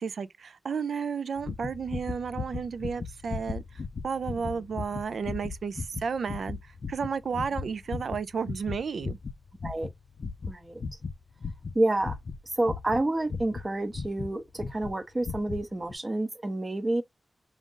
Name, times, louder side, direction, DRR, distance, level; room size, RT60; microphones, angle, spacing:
voice 1, 0.0-3.6 4.0-6.6 6.9-9.2, right 6 dB, 75° right, 0.4 m, -32 dB
sound 1, 1.4-14.3 14.6-15.0 15.2-15.6 15.9-16.0, left 4 dB, 55° left, 0.4 m, -37 dB
voice 2, 10.5-10.8 11.7-12.2 12.5-17.0, right 2 dB, 25° right, 0.7 m, -29 dB
5.0 x 2.5 x 3.7 m
wide cardioid pair, 160°, 0 cm